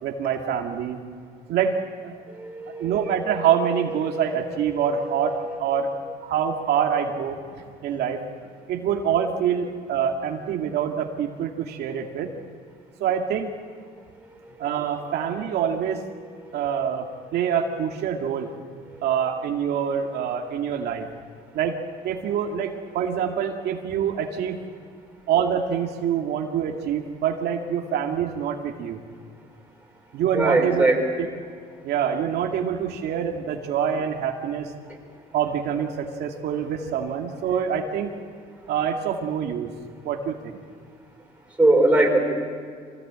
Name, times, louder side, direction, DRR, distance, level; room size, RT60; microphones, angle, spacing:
voice 1, 0.0-1.0 1.5-1.8 2.0-2.2 2.8-5.9 6.2-7.4 7.8-8.2 8.7-12.3 13.0-13.5 14.6-16.0 16.5-18.5 19.0-21.1 21.5-21.8 22.0-24.6 25.3-29.0 30.1-30.8 31.8-34.7 35.3-38.1 38.7-39.7 40.0-40.6, right 8 dB, 75° right, 1 dB, 2.3 m, -25 dB
voice 2, 2.3-3.4 4.0-5.3 14.4-14.6 30.3-31.0 34.9-35.0 41.6-42.2, right 2 dB, 10° right, -1 dB, 5.7 m, -22 dB
25.5 x 18.0 x 8.8 m, 2.2 s
cardioid pair, 110°, 17 cm